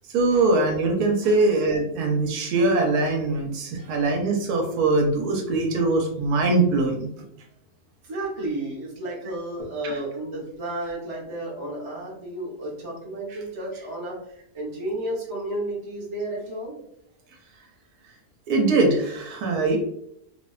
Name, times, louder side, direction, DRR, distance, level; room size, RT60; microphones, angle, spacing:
voice 1, 0.1-7.1 9.8-10.0 13.3-13.4 18.5-19.8, right 3 dB, 80° right, 2 dB, 1.1 m, -22 dB
voice 2, 8.0-14.2 14.5-16.8, right 1 dB, 30° right, -5 dB, 0.6 m, -32 dB
2.7 x 2.1 x 2.3 m, 0.73 s
omnidirectional pair, 1.6 m